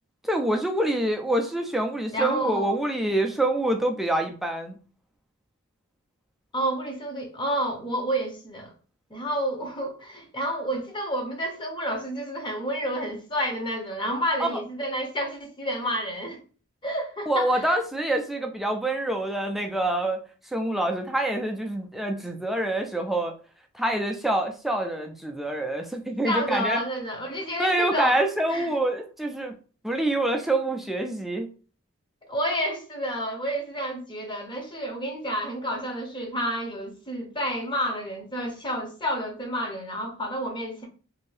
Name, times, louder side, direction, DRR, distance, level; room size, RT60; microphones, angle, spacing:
voice 1, 0.2-4.8 14.4-14.6 17.3-20.2 20.5-23.3 23.7-26.8 27.6-29.5 29.8-31.5, right 1 dB, ahead, 0.3 m, -26 dB
voice 2, 2.1-2.8 6.5-8.7 9.1-16.4 16.8-17.7 26.2-28.2 28.5-28.7 32.3-40.9, equal, 25° left, 0.7 m, -30 dB
2.6 x 2.6 x 3.2 m
head